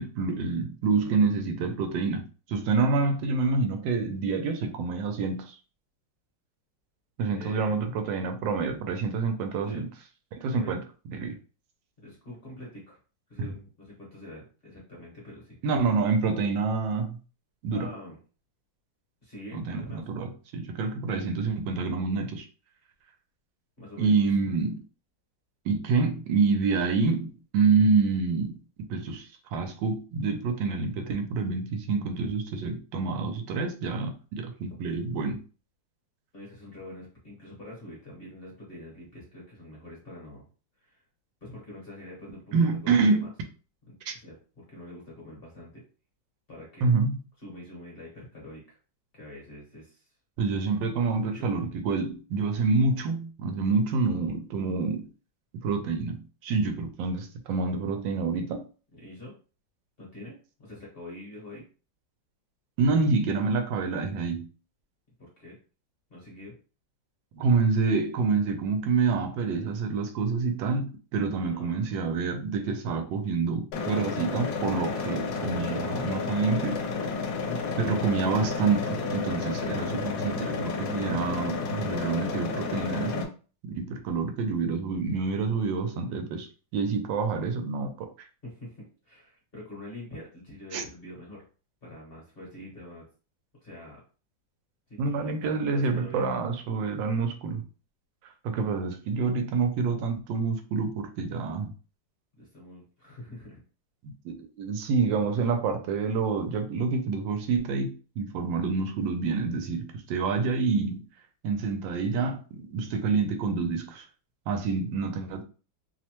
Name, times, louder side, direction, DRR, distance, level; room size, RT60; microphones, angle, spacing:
voice 1, 0.0-2.2 2.5-5.5 7.2-9.8 10.4-10.8 11.1-11.3 13.4-13.5 15.6-17.2 17.6-17.9 19.5-22.5 24.0-24.8 25.7-35.4 42.5-43.3 44.1-44.2 46.8-47.2 50.4-55.1 55.6-58.6 62.8-64.5 67.3-76.8 77.8-83.3 83.6-86.5 86.7-88.1 90.7-90.8 95.0-97.6 98.4-101.7 104.0-111.0 111.4-114.0 114.5-115.4, right 4 dB, 85° right, 1.3 m, -27 dB
voice 2, 1.0-1.3 7.3-7.8 9.6-9.8 10.5-10.8 12.0-13.0 13.3-15.6 17.7-18.2 19.2-20.0 23.8-24.2 36.3-40.5 40.8-41.0 41.4-42.5 42.8-43.3 43.9-45.8 46.5-47.0 47.4-48.8 49.1-50.1 51.0-51.5 58.9-59.3 60.0-61.6 65.2-65.6 66.1-66.5 71.4-71.8 88.4-91.4 91.8-93.0 93.6-94.0 94.9-96.3 102.4-103.6, left 1 dB, 40° left, 1.0 m, -45 dB
sound 1, 73.7-83.2, left 4 dB, 80° left, 1.2 m, -31 dB
3.1 x 2.0 x 2.9 m
omnidirectional pair, 2.0 m